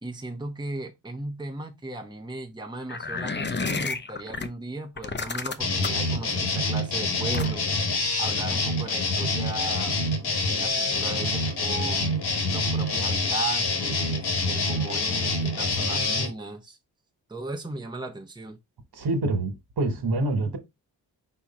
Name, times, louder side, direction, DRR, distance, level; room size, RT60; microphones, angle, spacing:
voice 1, 0.0-7.7 8.2-12.1 12.5-16.8 17.3-18.6, right 2 dB, 10° right, 1.1 m, -36 dB
sound 1, 2.9-4.5 5.0-6.1 7.3-7.8, left 4 dB, 25° left, 0.7 m, -31 dB
sound 2, 5.6-16.3, left 2 dB, 65° left, 1.3 m, -26 dB
voice 2, 18.9-20.6, right 2 dB, 60° right, 1.5 m, -26 dB
4.6 x 2.4 x 4.3 m
supercardioid pair, 45°, 42 cm